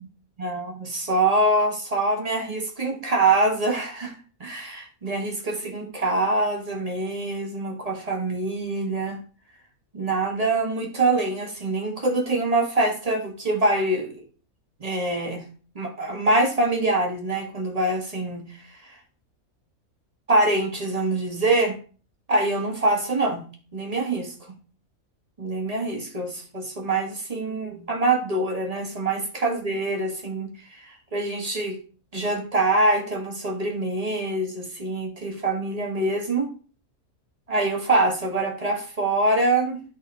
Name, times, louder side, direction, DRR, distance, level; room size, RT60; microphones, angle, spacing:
voice 1, 0.4-4.1 4.4-9.2 9.9-14.1 14.8-15.4 15.7-18.4 18.9-19.0 20.3-21.8 22.3-23.4 23.7-24.3 25.4-31.8 32.1-36.5 37.5-39.8, right 2 dB, 25° right, 2 dB, 1.7 m, -24 dB
10.5 x 4.0 x 4.0 m, 0.38 s
omnidirectional pair, 1.5 m